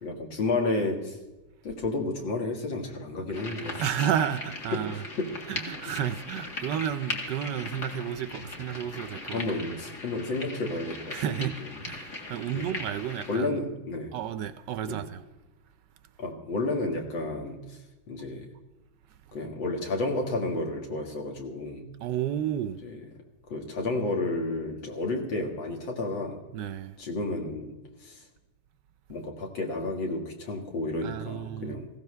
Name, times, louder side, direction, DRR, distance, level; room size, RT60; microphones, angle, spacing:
voice 1, 0.0-1.2 1.6-3.8 4.7-5.3 9.3-11.1 12.5-12.7 13.3-14.1 14.8-15.0 16.2-17.8 18.1-18.5 19.3-21.9 23.5-26.4 27.0-27.7 28.0-28.2 29.1-31.9, left 2 dB, 75° left, 2.6 m, -31 dB
sound 1, 3.3-13.4, left 2 dB, 40° left, 2.0 m, -39 dB
voice 2, 3.8-5.0 5.5-9.5 11.1-13.6 14.1-15.2 22.0-22.8 26.5-27.0 31.0-31.8, right 9 dB, 70° right, 1.1 m, -32 dB
19.0 x 15.5 x 3.3 m
omnidirectional pair, 2.1 m